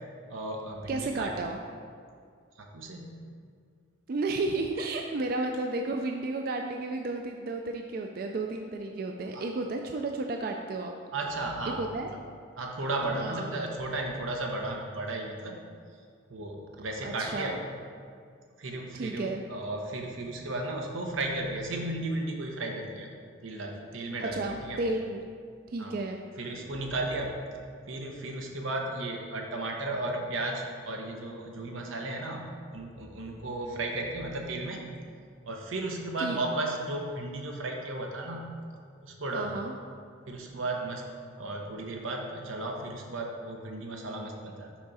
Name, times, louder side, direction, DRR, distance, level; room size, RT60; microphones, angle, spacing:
voice 1, 0.3-1.3 2.6-3.3 9.3-9.5 11.1-12.2 12.6-15.6 16.3-17.5 18.6-23.1 23.4-24.8 25.8-25.9 26.4-27.3 27.9-34.9 35.5-38.5 39.0-39.6 40.3-41.0 41.4-44.7, right 2 dB, 90° right, 1 dB, 0.9 m, -34 dB
voice 2, 0.9-1.6 4.1-10.9 11.7-12.1 13.0-13.6 17.0-17.6 18.9-19.4 24.2-25.2 25.7-26.2 36.2-36.4 39.3-39.7, right 2 dB, 50° right, 3 dB, 0.3 m, -32 dB
6.0 x 4.8 x 4.1 m, 2.1 s
head